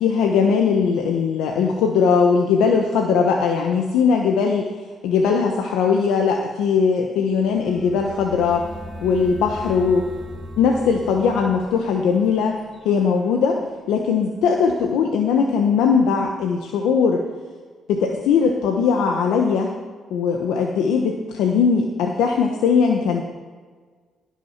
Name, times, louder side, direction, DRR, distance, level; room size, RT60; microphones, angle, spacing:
voice 1, 0.0-4.6 5.0-8.7 9.0-10.0 10.6-12.6 12.8-13.6 13.9-17.2 17.9-19.7 20.1-23.2, left 6 dB, 90° left, 2 dB, 1.1 m, -19 dB
sound 1, 7.3-14.0, equal, 15° right, 4.3 m, -39 dB
18.0 x 6.2 x 5.9 m, 1.5 s
cardioid pair, 90°, 0 cm